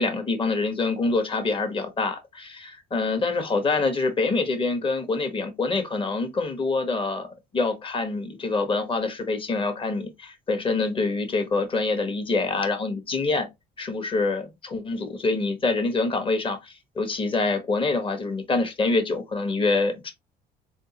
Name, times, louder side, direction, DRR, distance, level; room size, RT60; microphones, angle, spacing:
voice 1, 0.0-7.3 7.5-13.5 13.8-20.1, left 3 dB, 30° left, 1.2 m, -26 dB
3.5 x 3.3 x 2.9 m
cardioid pair, 110°, 17 cm